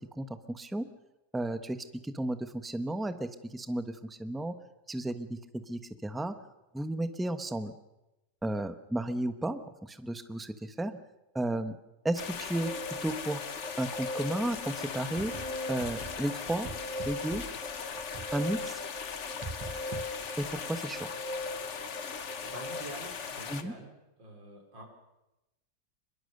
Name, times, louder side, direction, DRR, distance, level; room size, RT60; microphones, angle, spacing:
voice 1, 0.2-0.8 1.3-1.8 2.0-4.5 4.9-5.4 5.7-6.3 6.7-7.7 8.4-9.6 9.9-11.0 11.3-11.8 12.0-12.7 13.0-13.4 13.8-15.3 15.7-16.7 17.1-17.4 18.3-18.8 20.4-21.0 23.5-23.7, right 1 dB, ahead, 9 dB, 0.7 m, -33 dB
sound 1, 12.2-23.6, left 6 dB, 45° left, 1.3 m, -39 dB
sound 2, 12.7-22.8, left 1 dB, 20° right, 5.2 m, -41 dB
sound 3, 15.2-18.7 18.9-20.6, right 3 dB, 35° right, 0.4 m, -44 dB
voice 2, 22.4-23.9 24.2-24.9, right 1 dB, 90° right, 2 dB, 4.9 m, -46 dB
23.5 x 22.0 x 6.7 m, 0.95 s
omnidirectional pair, 1.9 m